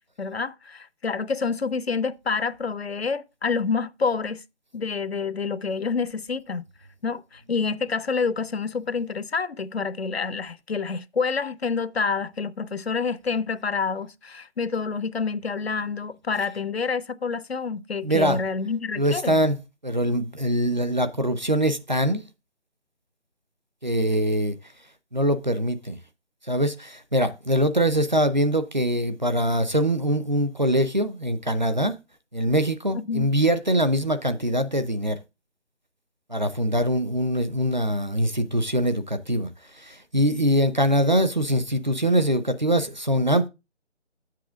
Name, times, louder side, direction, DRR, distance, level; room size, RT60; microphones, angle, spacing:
voice 1, 0.2-4.4 4.7-6.6 7.0-19.4 32.9-33.3, left 5 dB, 60° left, 0.5 m, -28 dB
voice 2, 18.0-18.4 19.0-19.6 19.8-22.2 23.8-24.6 25.1-26.0 26.5-31.9 32.3-35.2 36.3-39.5 39.8-43.5, equal, 40° right, 0.6 m, -23 dB
7.6 x 7.5 x 3.6 m
figure-of-eight pair, 180°, 35 cm